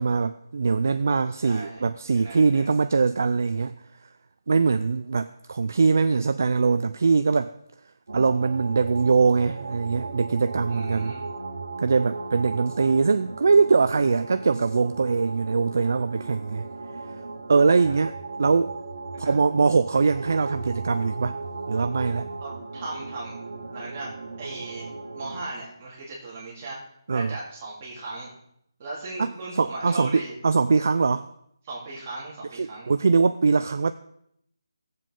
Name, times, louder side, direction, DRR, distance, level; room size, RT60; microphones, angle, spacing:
voice 1, 0.0-3.8 4.5-7.5 8.1-11.1 11.8-16.6 17.5-18.7 19.2-21.4 21.7-22.3 27.1-27.4 29.2-29.3 29.6-31.2 32.5-33.9, right 4 dB, 40° right, 0.3 m, -22 dB
voice 2, 1.3-2.7 10.7-11.3 17.9-18.0 19.2-19.3 22.4-23.4 23.7-24.9 25.2-26.8 27.1-28.3 28.8-30.3 31.6-32.9, right 2 dB, 20° right, 2.3 m, -37 dB
sound 1, 8.1-25.4, right 3 dB, 75° right, 1.7 m, -36 dB
17.0 x 7.5 x 3.7 m
hypercardioid pair, 180°, 2 cm